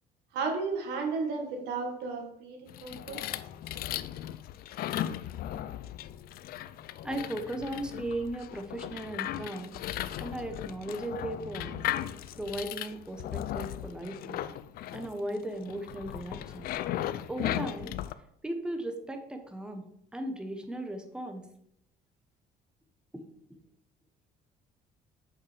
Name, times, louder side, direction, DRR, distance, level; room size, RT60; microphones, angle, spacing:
voice 1, 0.3-3.2, right 4 dB, 85° right, 3 dB, 1.4 m, -33 dB
sound 1, 2.7-18.1, left 12 dB, 65° left, 0.4 m, -37 dB
voice 2, 7.0-9.8 10.2-11.8 12.4-14.4 14.9-16.7 17.3-17.9 18.4-19.8 20.1-21.4 23.1-23.2, right 1 dB, 5° right, 5 dB, 0.9 m, -37 dB
6.6 x 5.4 x 3.3 m, 0.75 s
cardioid pair, 110°, 17 cm